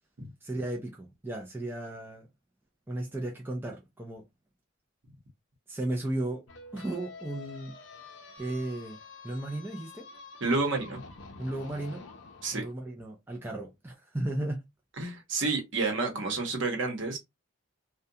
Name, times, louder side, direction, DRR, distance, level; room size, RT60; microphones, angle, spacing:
voice 1, 0.4-2.3 2.9-4.3 5.7-6.5 6.7-7.7 8.4-9.0 9.2-10.1 11.4-12.0 12.5-14.6, right 1 dB, 10° right, 0.3 m, -35 dB
sound 1, 6.5-12.7, left 4 dB, 60° left, 0.5 m, -48 dB
voice 2, 10.4-11.0 12.4-12.6 15.0-17.2, right 3 dB, 60° right, 0.9 m, -29 dB
2.4 x 2.2 x 2.6 m
head